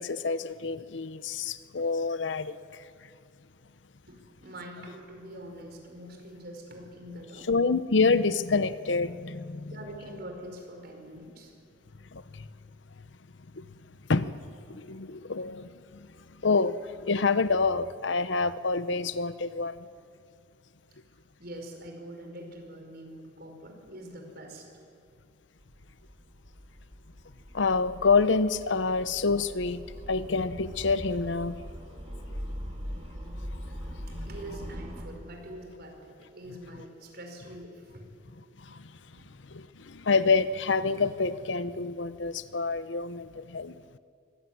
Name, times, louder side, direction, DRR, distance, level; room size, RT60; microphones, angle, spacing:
voice 1, 0.0-2.5 7.5-9.7 12.1-12.2 14.1-14.3 14.7-15.7 16.4-16.8 17.0-19.8 27.5-29.8 30.1-31.6 39.5-43.7, left 4 dB, 75° left, 14 dB, 0.8 m, -27 dB
voice 2, 4.1-7.5 9.7-11.5 21.4-24.7 32.6-32.7 34.1-38.1, right 1 dB, 55° right, 3 dB, 5.0 m, -44 dB
sound 1, 25.6-35.0, equal, 35° right, 3.6 m, -41 dB
24.0 x 17.5 x 9.6 m, 2.3 s
head